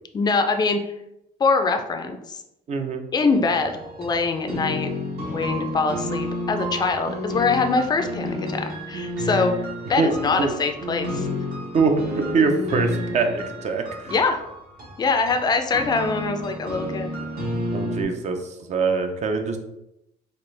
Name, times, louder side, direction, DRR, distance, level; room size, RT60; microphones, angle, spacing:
voice 1, 0.1-0.8 1.4-2.4 3.1-4.9 5.3-9.5 9.9-11.3 14.1-14.4 15.0-17.2, left 4 dB, 25° left, 6 dB, 0.4 m, -23 dB
voice 2, 2.7-3.0 10.0-10.1 10.4-10.5 11.7-14.1 17.7-18.4 18.7-19.6, right 4 dB, 45° right, 5 dB, 0.6 m, -23 dB
sound 1, 3.3-18.0, left 1 dB, 60° right, 1.2 m, -30 dB
4.3 x 2.4 x 3.3 m, 0.87 s
cardioid pair, 110°, 17 cm